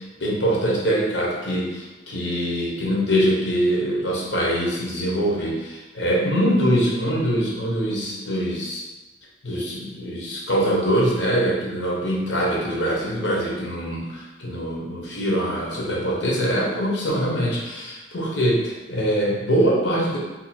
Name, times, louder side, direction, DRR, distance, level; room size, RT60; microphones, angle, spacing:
voice 1, 0.0-8.8 9.4-20.2, equal, 80° left, -4 dB, 0.9 m, -23 dB
2.8 x 2.4 x 4.2 m, 1.1 s
head